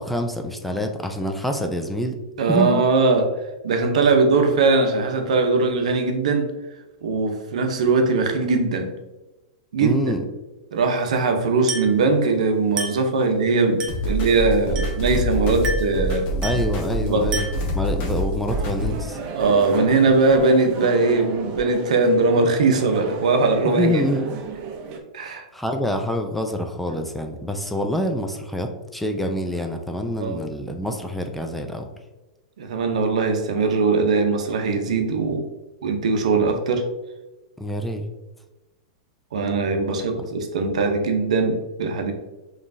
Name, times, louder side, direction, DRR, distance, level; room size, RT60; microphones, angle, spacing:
voice 1, 0.0-2.2 2.5-2.8 9.8-10.2 16.4-17.5 17.7-19.2 23.6-24.4 25.2-31.9 37.6-38.1 40.2-40.3, equal, 5° left, 4 dB, 0.4 m, -26 dB
voice 2, 2.4-6.5 7.0-8.9 9.7-10.0 10.7-16.3 17.1-17.3 19.3-24.0 25.1-25.4 30.0-30.4 32.6-35.4 35.8-36.9 39.3-42.1, right 3 dB, 80° right, 5 dB, 0.7 m, -20 dB
Glass, 11.7-12.0 12.8-13.1 13.8-14.1 14.7-15.1 15.6-16.0 16.4-16.8 17.3-17.7, right 3 dB, 20° right, 1.1 m, -30 dB
sound 1, 13.9-19.0, equal, 40° left, 1.1 m, -26 dB
sound 2, 18.5-25.0, right 4 dB, 45° right, 0.7 m, -34 dB
5.1 x 3.1 x 2.6 m, 1.0 s
hypercardioid pair, 125°, 4 cm